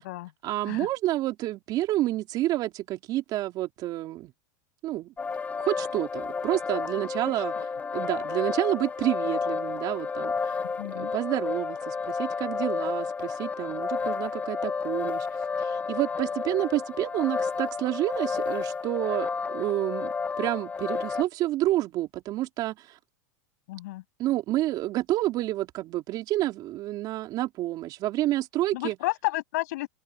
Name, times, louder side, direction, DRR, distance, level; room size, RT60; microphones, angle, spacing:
voice 1, 0.4-4.3 4.8-5.1 5.6-7.5 7.9-10.6 10.9-15.3 15.6-23.0 24.2-29.0, right 15 dB, 45° right, 3.6 m, -29 dB
sound 1, 5.2-21.2, left 5 dB, 15° left, 1.2 m, -31 dB
voice 2, 10.8-11.1 23.7-24.0 28.7-29.9, left 18 dB, 70° left, 7.8 m, -32 dB
open air
hypercardioid pair, 115°, 10 cm